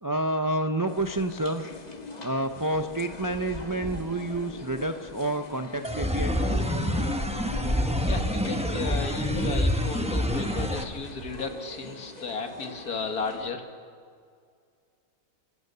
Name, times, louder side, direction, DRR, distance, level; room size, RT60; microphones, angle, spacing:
voice 1, 0.0-1.6 2.2-6.4, right 1 dB, 30° right, 7 dB, 0.3 m, -29 dB
sound 1, 0.9-13.5, left 3 dB, 30° left, 1.4 m, -41 dB
sound 2, 5.8-10.8, equal, 5° right, 0.9 m, -27 dB
voice 2, 8.0-13.6, left 4 dB, 80° left, 5 dB, 2.2 m, -34 dB
30.0 x 16.0 x 6.7 m, 2.2 s
omnidirectional pair, 1.6 m